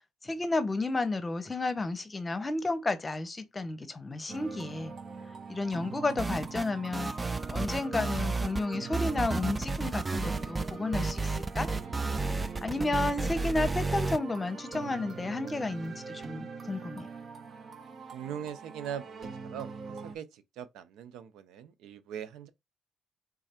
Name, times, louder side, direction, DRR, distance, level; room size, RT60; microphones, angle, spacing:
voice 1, 0.2-4.9 5.5-11.7 12.6-17.1, left 2 dB, 25° left, 0.8 m, -32 dB
sound 1, 4.3-20.2, right 5 dB, 50° right, 0.9 m, -42 dB
sound 2, 6.2-6.7 6.9-8.6 8.9-14.2, right 3 dB, 20° right, 0.4 m, -32 dB
voice 2, 18.1-22.5, right 9 dB, 90° right, 0.6 m, -41 dB
3.7 x 3.2 x 4.3 m
cardioid pair, 90°, 0 cm